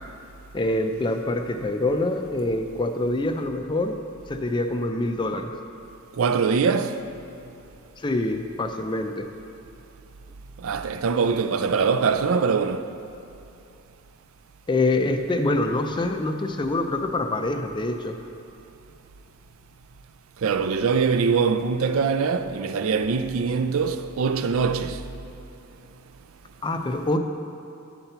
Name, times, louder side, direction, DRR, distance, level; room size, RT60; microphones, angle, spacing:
voice 1, 0.5-4.0 4.3-5.5 8.0-9.3 14.7-18.2 26.6-27.2, left 2 dB, 20° left, 0.4 m, -25 dB
voice 2, 6.2-7.0 10.6-12.9 20.4-25.0, right 5 dB, 70° right, 0.4 m, -23 dB
9.8 x 4.3 x 6.7 m
head